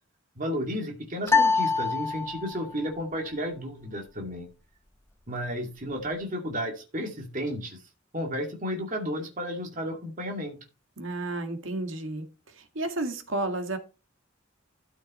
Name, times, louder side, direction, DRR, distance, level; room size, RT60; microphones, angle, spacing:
voice 1, 0.4-4.5 5.3-7.8 8.1-10.6, equal, 40° right, 2.5 m, -33 dB
sound 1, 1.3-2.8, left 4 dB, 10° left, 0.7 m, -24 dB
voice 2, 11.0-12.3 12.5-13.8, right 2 dB, 75° right, 2.0 m, -32 dB
13.0 x 6.4 x 4.3 m
head